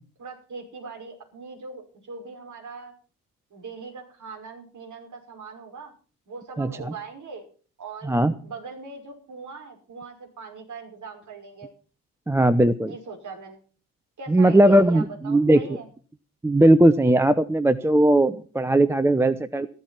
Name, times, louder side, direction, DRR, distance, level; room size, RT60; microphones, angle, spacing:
voice 1, 0.2-2.9 3.5-5.9 6.3-7.5 7.8-8.1 8.4-11.7 12.9-13.6 14.2-15.9, right 4 dB, 40° right, 1 dB, 5.7 m, -40 dB
voice 2, 12.3-12.9 14.3-15.6 16.4-19.7, right 1 dB, 5° right, 13 dB, 0.7 m, -18 dB
14.0 x 12.5 x 5.8 m, 0.40 s
figure-of-eight pair, 50°, 46 cm